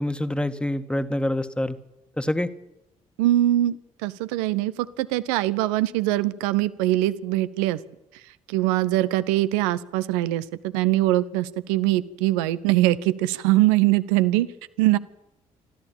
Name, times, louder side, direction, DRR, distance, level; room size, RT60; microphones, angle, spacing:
voice 1, 0.0-1.8 2.2-2.5, left 1 dB, 5° left, 9 dB, 1.7 m, -26 dB
voice 2, 3.2-3.8 4.0-7.8 8.5-10.4 10.7-14.5 14.8-15.0, right 15 dB, 75° right, 15 dB, 0.8 m, -22 dB
25.5 x 13.5 x 8.6 m, 0.93 s
figure-of-eight pair, 45°, 17 cm